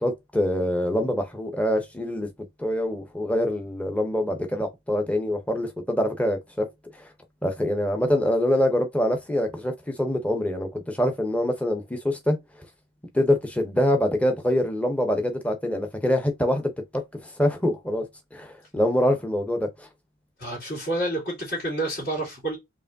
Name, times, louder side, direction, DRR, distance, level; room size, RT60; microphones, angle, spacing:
voice 1, 0.0-6.7 6.9-7.1 7.4-12.4 13.1-19.9, left 1 dB, 5° left, 0.7 m, -25 dB
voice 2, 20.4-22.6, right 1 dB, 55° left, 2.5 m, -29 dB
4.7 x 3.1 x 2.6 m
head